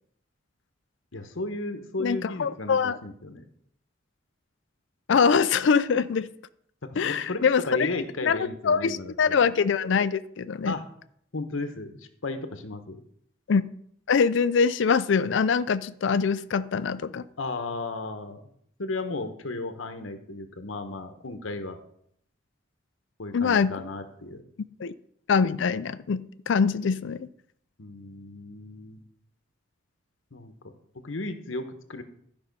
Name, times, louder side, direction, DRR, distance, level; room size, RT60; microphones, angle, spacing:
voice 1, 1.1-3.4 6.9-9.5 10.6-10.8 11.3-13.0 17.4-18.4 18.8-21.8 23.2-24.4 27.8-29.0 30.3-32.0, left 2 dB, 85° left, 7 dB, 1.1 m, -35 dB
voice 2, 2.0-3.0 5.1-6.3 7.0-7.9 8.2-8.4 8.6-10.7 13.5-13.6 14.1-17.3 23.3-23.8 24.8-24.9 25.3-27.3, left 5 dB, 70° left, 14 dB, 0.4 m, -23 dB
12.5 x 5.5 x 5.4 m, 0.69 s
head